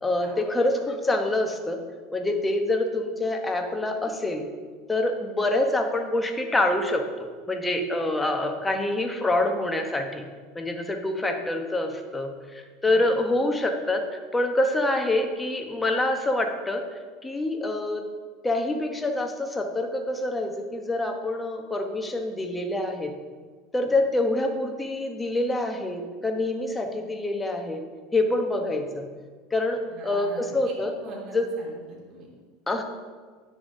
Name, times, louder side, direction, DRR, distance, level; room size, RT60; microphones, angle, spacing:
voice 1, 0.0-1.8 2.1-4.4 4.9-10.2 10.5-16.8 17.2-18.1 18.4-23.1 23.7-27.8 28.1-29.1 29.5-30.9 31.3-31.4 32.7-32.8, left 2 dB, 15° left, 4 dB, 1.0 m, -26 dB
voice 2, 12.8-13.2 29.9-30.7 31.0-32.3, right 2 dB, 45° right, -3 dB, 2.5 m, -43 dB
9.9 x 7.0 x 2.7 m, 1.5 s
supercardioid pair, 100°, 0 cm